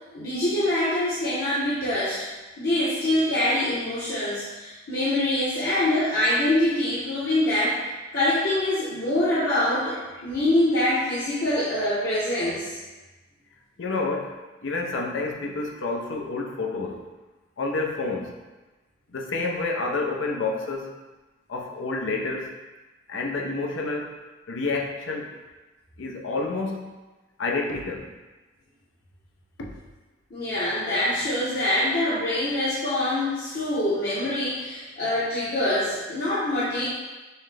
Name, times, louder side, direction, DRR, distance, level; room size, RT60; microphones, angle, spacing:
voice 1, 0.1-2.3 2.6-7.8 8.1-12.8 30.3-36.9, left 1 dB, 50° left, -11 dB, 0.8 m, -24 dB
voice 2, 13.8-17.0 17.6-18.3 19.1-21.0 21.5-22.5 23.1-24.2 24.5-25.3 26.0-26.9 27.4-28.1 29.6-29.7, left 3 dB, 85° left, 0 dB, 0.6 m, -29 dB
5.5 x 2.1 x 3.3 m, 1.2 s
head